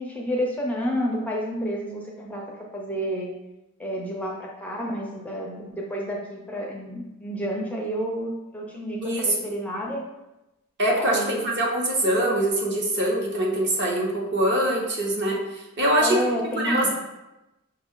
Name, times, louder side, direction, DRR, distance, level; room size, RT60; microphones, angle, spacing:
voice 1, 0.0-3.3 3.8-10.0 10.9-12.2 16.0-16.9, equal, 5° left, -2 dB, 0.4 m, -30 dB
voice 2, 10.8-16.2 16.5-16.8, right 1 dB, 55° right, -2 dB, 0.9 m, -23 dB
5.4 x 2.4 x 3.6 m, 0.97 s
head